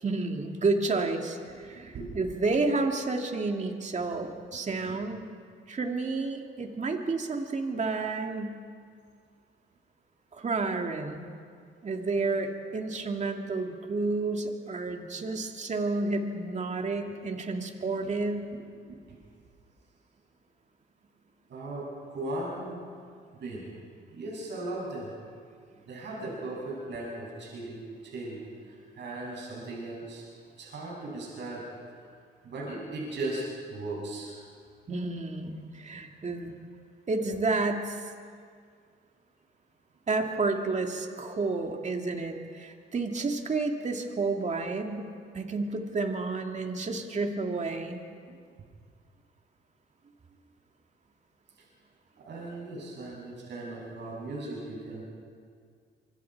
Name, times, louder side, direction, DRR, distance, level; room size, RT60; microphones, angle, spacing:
voice 1, 0.0-5.3 5.7-8.6 10.3-11.3 11.8-18.5 34.9-36.6 37.1-38.1 40.1-45.1 45.3-48.0, right 3 dB, 35° right, 3 dB, 2.3 m, -30 dB
voice 2, 1.6-2.2 18.9-19.0 21.5-22.8 23.4-23.7 24.1-25.1 25.9-30.2 30.6-31.7 32.0-32.1 32.4-33.4 33.7-34.4 52.2-55.0, right 2 dB, 65° right, -4 dB, 7.7 m, -37 dB
25.0 x 24.0 x 4.7 m, 2.2 s
cardioid pair, 90°, 20 cm